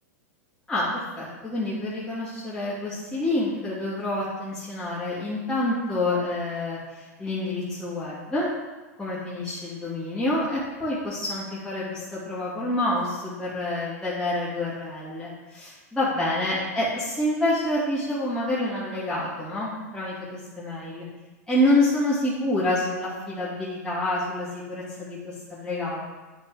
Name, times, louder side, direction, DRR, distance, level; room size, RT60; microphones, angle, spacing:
voice 1, 0.7-8.5 9.0-21.0 21.5-26.0, left 1 dB, 10° left, -10 dB, 2.5 m, -27 dB
9.4 x 4.3 x 4.9 m, 1.2 s
hypercardioid pair, 120°, 9 cm